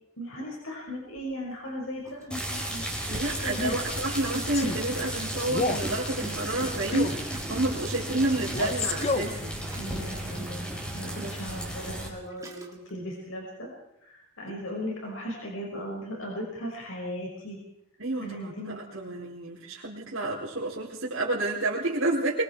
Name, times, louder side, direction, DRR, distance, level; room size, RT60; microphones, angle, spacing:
voice 1, 0.2-2.9 3.3-3.9 4.3-4.4 9.7-13.7 14.0-17.6 18.2-18.8, equal, 80° left, -1 dB, 5.8 m, -37 dB
Gurgling, 1.2-1.3 2.0-4.8 5.4-9.0 9.6-11.1 11.8-11.9 12.3-12.9, right 1 dB, 15° right, 2.7 m, -44 dB
sound 1, 2.3-12.1, right 1 dB, 5° left, 4.6 m, -34 dB
voice 2, 3.0-9.6 11.2-11.3 14.5-14.6 18.0-22.4, right 2 dB, 70° right, -5 dB, 4.3 m, -30 dB
Male speech man speaking, 3.5-3.9 4.5-4.8 5.5-5.9 6.9-7.2 8.5-9.4, left 3 dB, 30° left, 1.2 m, -29 dB
25.0 x 23.0 x 4.7 m, 0.81 s
head